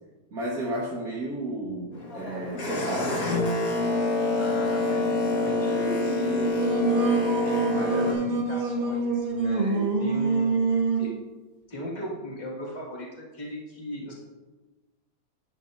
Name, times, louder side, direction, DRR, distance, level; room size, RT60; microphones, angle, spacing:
voice 1, 0.3-3.3, right 1 dB, 85° right, -5 dB, 1.7 m, -32 dB
Boat Water vehicle, 1.9-8.1, left 2 dB, 75° left, 2.0 m, -26 dB
voice 2, 4.3-6.5 7.4-11.2 11.7-14.1, equal, 30° left, -4 dB, 1.8 m, -37 dB
Singing, 6.3-11.1, right 4 dB, 35° right, 0.9 m, -26 dB
11.5 x 7.3 x 2.5 m, 1.2 s
omnidirectional pair, 1.5 m